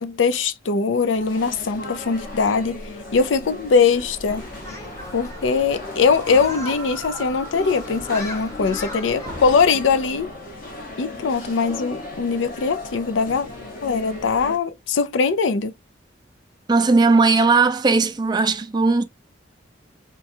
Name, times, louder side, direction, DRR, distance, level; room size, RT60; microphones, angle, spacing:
voice 1, 0.0-2.8 3.1-4.5 5.1-10.3 11.0-13.5 13.8-15.7, left 5 dB, 85° left, 0.5 m, -21 dB
sound 1, 0.9-14.6, left 2 dB, 50° left, 1.2 m, -36 dB
Human group actions, 4.3-9.6, left 1 dB, 15° left, 0.9 m, -36 dB
voice 2, 16.7-19.0, right 4 dB, 20° right, 0.3 m, -17 dB
4.5 x 2.2 x 2.6 m
head